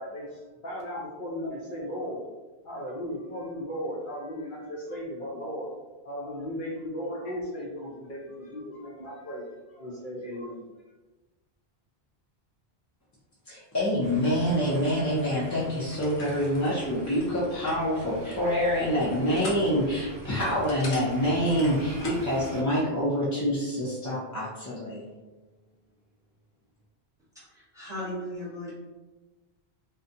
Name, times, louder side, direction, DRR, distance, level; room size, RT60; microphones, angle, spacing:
voice 1, 0.0-2.2 2.6-5.8 6.0-10.7, equal, 60° left, -4 dB, 0.7 m, -36 dB
voice 2, 13.4-25.1, equal, 30° left, -8 dB, 0.3 m, -26 dB
sound 1, 14.0-22.6, equal, 75° right, 0.9 m, -45 dB
sound 2, 14.4-22.3, left 2 dB, 80° left, 0.9 m, -44 dB
voice 3, 27.5-28.8, left 1 dB, 5° right, -9 dB, 0.9 m, -36 dB
2.5 x 2.1 x 2.6 m, 1.2 s
omnidirectional pair, 1.1 m